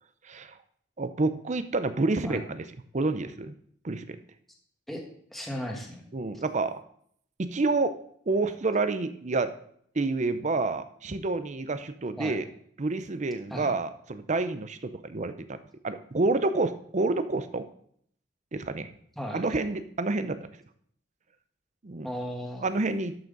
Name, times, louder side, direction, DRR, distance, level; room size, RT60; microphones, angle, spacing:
voice 1, 0.2-0.6 1.0-2.7 2.9-3.5 3.8-4.2 6.1-6.8 7.4-8.0 8.3-9.5 9.9-12.5 12.8-15.6 15.8-17.7 18.5-18.9 19.3-20.5 21.8-22.1 22.6-23.3, right 3 dB, 40° right, 11 dB, 0.6 m, -28 dB
voice 2, 5.3-6.1 12.2-12.4 13.5-13.7 19.2-19.5 22.0-22.7, equal, ahead, 0 dB, 1.5 m, -36 dB
12.0 x 6.1 x 3.9 m, 0.64 s
head